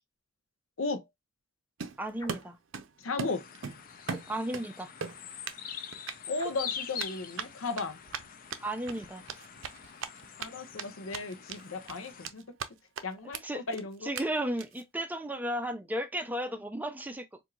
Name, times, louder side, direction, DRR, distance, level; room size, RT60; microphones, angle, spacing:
Run, 1.8-2.9 3.2-4.7 5.0-5.6 5.9-6.2 7.0-10.5 10.8-10.9 11.1-11.6 11.9-12.7 13.0-13.1 13.3-13.4 13.7-13.8 14.2-14.3 14.6-14.8, right 6 dB, 65° right, 0.5 m, -38 dB
voice 1, 2.0-2.6 4.3-4.9 8.6-9.2 13.4-13.6 14.0-17.3, right 1 dB, 10° right, 0.4 m, -34 dB
sound 1, 2.2-2.5 4.0-4.6 6.3-6.8, equal, 20° left, 1.2 m, -48 dB
voice 2, 3.0-3.5 6.3-8.0 10.4-12.4 13.0-14.1, left 3 dB, 80° left, 0.8 m, -35 dB
sound 2, 3.3-12.3, left 7 dB, 45° left, 0.5 m, -44 dB
4.3 x 2.6 x 2.4 m
head